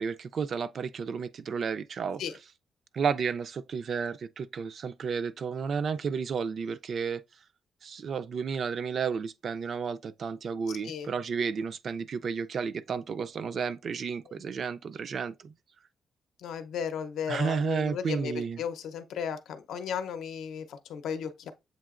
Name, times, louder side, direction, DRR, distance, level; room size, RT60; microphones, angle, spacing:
voice 1, 0.0-2.2 2.9-7.2 7.8-15.5 17.3-18.6, right 6 dB, 50° right, 0.3 m, -32 dB
voice 2, 10.7-11.1 16.4-21.5, left 7 dB, 85° left, 0.6 m, -35 dB
7.4 x 2.8 x 2.4 m
cardioid pair, 125°, 0 cm